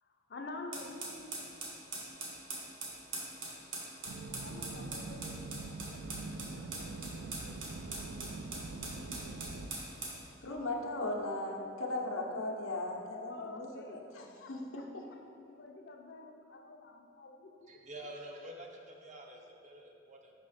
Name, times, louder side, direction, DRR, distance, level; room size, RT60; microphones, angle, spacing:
voice 1, 0.0-1.3 4.3-6.0 13.3-15.2 15.5-17.8, left 2 dB, 50° left, 3 dB, 0.5 m, -49 dB
sound 1, 0.7-10.2, right 3 dB, 70° right, 1.2 m, -42 dB
sound 2, 4.0-9.7, right 3 dB, 85° right, 0.4 m, -44 dB
voice 2, 10.4-15.0, left 2 dB, 85° left, 0 dB, 0.8 m, -38 dB
voice 3, 17.7-20.3, right 1 dB, 35° right, 1 dB, 0.5 m, -48 dB
5.7 x 4.8 x 4.2 m, 2.6 s
head